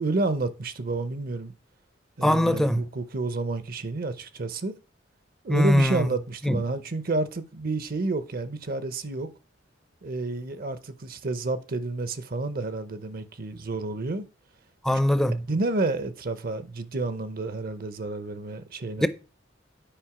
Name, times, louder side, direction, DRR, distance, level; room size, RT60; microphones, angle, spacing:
voice 1, 0.0-1.5 2.2-4.7 5.4-9.3 10.0-14.2 15.5-19.1, right 3 dB, 50° right, 0.7 m, -30 dB
voice 2, 2.2-2.8 5.5-6.0 6.5-6.6 14.8-15.4 19.0-19.1, left 1 dB, ahead, 0.5 m, -21 dB
8.9 x 5.1 x 4.8 m
head